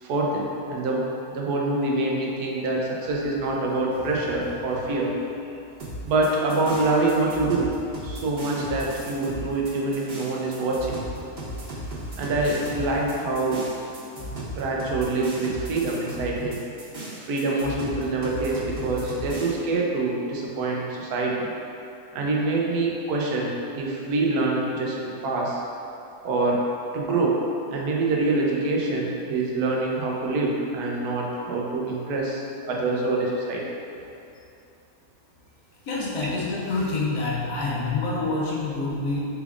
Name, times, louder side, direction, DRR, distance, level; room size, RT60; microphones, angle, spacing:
voice 1, 0.0-5.1 6.0-7.8 8.0-11.0 12.2-13.7 14.5-16.6 17.1-21.5 22.1-25.6 26.2-26.6 26.9-27.4 27.7-33.6, right 2 dB, 80° right, -2 dB, 1.1 m, -25 dB
sound 1, 3.0-8.3 8.7-9.8 10.2-10.4 10.7-14.5, left 2 dB, 65° left, 1.2 m, -47 dB
sound 2, 5.8-19.5, right 1 dB, 35° right, 0.9 m, -36 dB
voice 2, 35.8-39.3, left 3 dB, 85° left, -5 dB, 1.3 m, -27 dB
4.7 x 3.4 x 2.4 m, 2.7 s
omnidirectional pair, 1.6 m